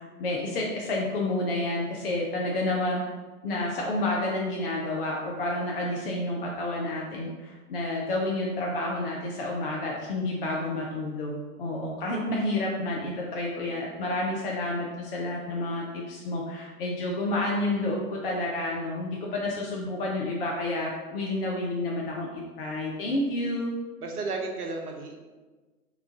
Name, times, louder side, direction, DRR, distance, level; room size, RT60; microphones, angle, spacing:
voice 1, 0.0-3.0 3.4-23.7, left 2 dB, 40° left, -2 dB, 0.5 m, -30 dB
voice 2, 24.0-25.2, right 3 dB, 75° right, 2 dB, 0.9 m, -33 dB
3.4 x 3.0 x 3.8 m, 1.3 s
figure-of-eight pair, 120°, 45 cm